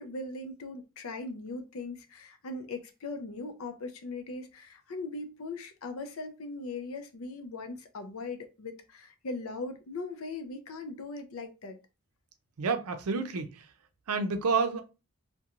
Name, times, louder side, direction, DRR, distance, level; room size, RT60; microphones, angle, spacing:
voice 1, 0.0-11.8, left 3 dB, 70° left, 0.5 m, -39 dB
voice 2, 12.6-13.7 14.1-14.8, right 4 dB, 85° right, 0.5 m, -29 dB
2.4 x 2.2 x 2.9 m
head